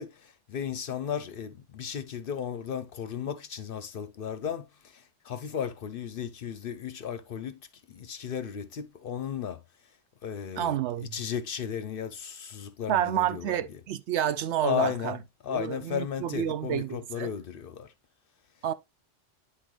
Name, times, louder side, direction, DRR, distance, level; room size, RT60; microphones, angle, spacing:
voice 1, 0.0-7.6 7.9-9.6 10.2-13.8 14.6-17.9, left 8 dB, 60° left, 0.7 m, -35 dB
voice 2, 10.6-11.1 12.9-15.2 15.5-17.3 18.6-18.7, right 11 dB, 75° right, 0.8 m, -29 dB
9.7 x 3.8 x 3.1 m
omnidirectional pair, 1.2 m